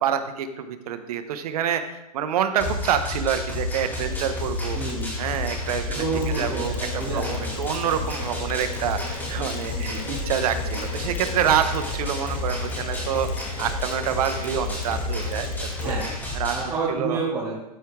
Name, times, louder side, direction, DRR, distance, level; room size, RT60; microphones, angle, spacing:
voice 1, 0.0-4.8 5.2-13.3 13.6-15.9 16.3-16.5 16.9-17.2, right 9 dB, 65° right, 9 dB, 0.8 m, -27 dB
sound 1, 2.6-16.6, left 2 dB, 10° left, 2.7 m, -30 dB
Mechanisms, 4.1-16.4, left 5 dB, 55° left, 1.5 m, -40 dB
voice 2, 4.7-5.1 5.9-7.5 9.7-10.0 15.8-16.1 16.5-17.6, right 4 dB, 20° right, -8 dB, 2.1 m, -29 dB
13.5 x 4.5 x 3.6 m, 0.91 s
hypercardioid pair, 140°, 21 cm